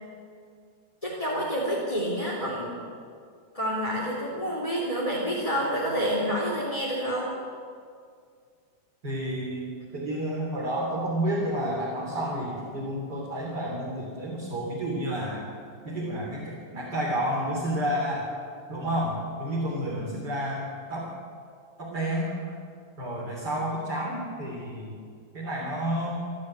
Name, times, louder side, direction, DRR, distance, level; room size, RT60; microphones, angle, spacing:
voice 1, 1.0-2.8 3.5-7.3, equal, 10° left, -6 dB, 2.9 m, -28 dB
voice 2, 9.0-15.5 15.8-18.3 18.7-21.1 21.8-22.3 23.0-24.9 25.3-26.2, right 1 dB, 30° right, -4 dB, 3.8 m, -30 dB
28.5 x 12.0 x 8.1 m, 2.2 s
omnidirectional pair, 3.7 m